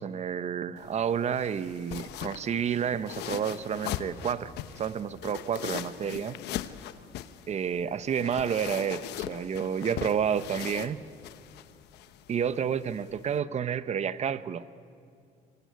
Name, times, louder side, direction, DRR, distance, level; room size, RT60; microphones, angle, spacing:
voice 1, 0.0-6.4 7.5-11.0 12.3-14.6, right 8 dB, 40° right, 14 dB, 0.9 m, -30 dB
sound 1, 0.8-13.4, left 12 dB, 80° left, 1.1 m, -40 dB
25.0 x 24.0 x 9.5 m, 2.4 s
cardioid pair, 110°, 17 cm